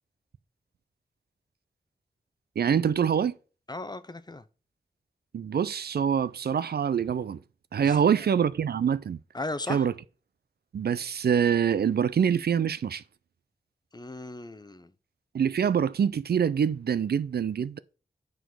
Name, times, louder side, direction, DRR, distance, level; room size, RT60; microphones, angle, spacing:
voice 1, 2.6-3.3 5.3-7.4 7.7-9.2 9.7-9.9 10.7-13.0 15.3-17.8, right 8 dB, 90° right, 0.5 m, -25 dB
voice 2, 3.7-4.4 7.8-8.3 9.3-9.9 13.9-14.9, left 2 dB, 25° left, 0.7 m, -37 dB
9.3 x 4.0 x 6.3 m
wide cardioid pair, 65°, 16 cm